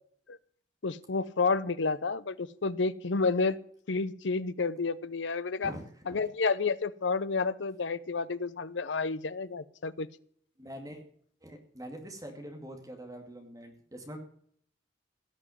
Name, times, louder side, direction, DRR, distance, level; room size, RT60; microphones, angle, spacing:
voice 1, 0.8-3.6 3.9-5.7 6.1-10.1, left 4 dB, 80° left, 16 dB, 0.7 m, -30 dB
voice 2, 5.6-6.0 10.6-11.0 11.4-14.2, equal, 20° right, 4 dB, 2.2 m, -44 dB
16.5 x 6.1 x 9.3 m, 0.63 s
head